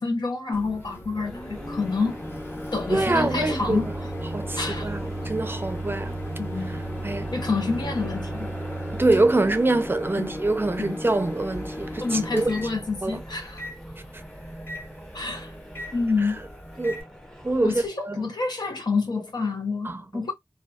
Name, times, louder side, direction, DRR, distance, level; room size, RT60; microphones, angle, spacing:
voice 1, 0.0-2.2 2.7-3.9 4.6-4.9 6.4-6.7 7.3-8.5 10.2-10.4 10.8-11.0 12.0-13.6 15.1-15.5 15.9-16.4 17.6-20.3, left 4 dB, 80° left, 0.8 m, -28 dB
Microwave oven, 0.5-17.0, equal, 30° left, 0.9 m, -35 dB
sound 1, 1.1-17.9, equal, 10° left, 0.7 m, -41 dB
voice 2, 2.9-3.9 4.3-6.2 6.7-6.8 7.0-7.3 8.9-12.5 13.0-13.2 16.8-17.0 17.4-18.3 19.8-20.2, right 2 dB, 30° right, 0.4 m, -25 dB
2.5 x 2.3 x 2.2 m
wide cardioid pair, 60°, 7 cm